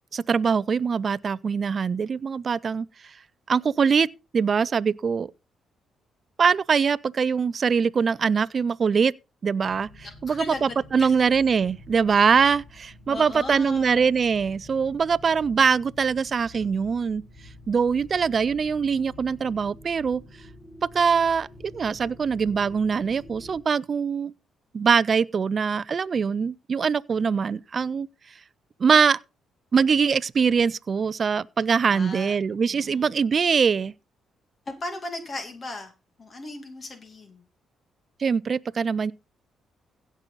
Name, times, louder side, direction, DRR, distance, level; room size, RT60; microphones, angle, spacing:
voice 1, 0.1-2.9 3.5-4.1 4.3-5.3 6.4-9.1 9.4-9.9 10.2-17.2 17.7-20.2 20.9-21.5 21.7-24.3 24.7-28.1 28.8-29.2 29.7-33.9 38.2-39.1, right 6 dB, 45° right, 0.5 m, -23 dB
sound 1, 9.6-23.6, left 1 dB, 55° left, 4.7 m, -48 dB
voice 2, 10.0-11.2 13.1-14.1 31.8-32.3 32.7-33.1 34.7-35.9 36.2-37.4, left 2 dB, 35° left, 2.3 m, -37 dB
16.5 x 6.1 x 4.0 m
cardioid pair, 90°, 0 cm